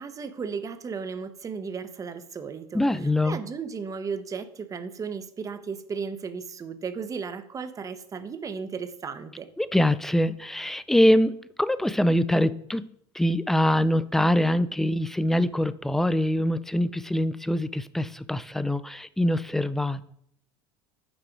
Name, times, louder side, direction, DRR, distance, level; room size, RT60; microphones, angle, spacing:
voice 1, 0.0-2.8 3.2-9.5, right 5 dB, 25° right, 10 dB, 0.7 m, -35 dB
voice 2, 2.7-3.4 9.6-12.9 13.1-20.1, left 1 dB, 5° left, 15 dB, 0.3 m, -24 dB
6.2 x 4.7 x 4.5 m, 0.69 s
hypercardioid pair, 95°, 13 cm